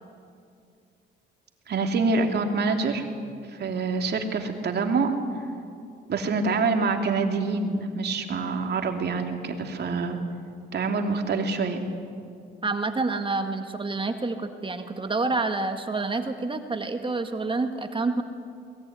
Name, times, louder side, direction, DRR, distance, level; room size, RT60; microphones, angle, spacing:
voice 1, 1.7-3.0 3.5-5.1 6.1-10.2 10.7-11.8, right 4 dB, 55° right, 4 dB, 3.0 m, -26 dB
voice 2, 12.6-18.2, right 3 dB, 25° right, 6 dB, 1.8 m, -28 dB
23.0 x 20.5 x 9.6 m, 2.3 s
cardioid pair, 90°, 20 cm